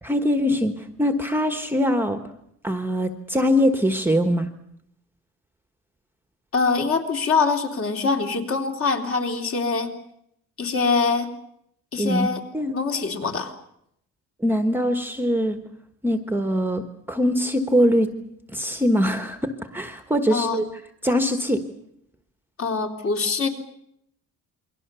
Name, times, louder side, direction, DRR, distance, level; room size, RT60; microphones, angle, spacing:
voice 1, 0.0-2.2 2.6-4.5 12.0-12.3 12.5-12.8 14.4-15.6 16.0-18.1 18.5-20.6 21.0-21.6, equal, 5° right, 7 dB, 1.3 m, -22 dB
voice 2, 6.5-9.9 10.6-11.3 11.9-12.4 12.7-13.5 20.3-20.6 22.6-23.5, left 4 dB, 40° left, 4 dB, 3.4 m, -24 dB
28.5 x 23.0 x 6.9 m, 0.74 s
cardioid pair, 160°, 33 cm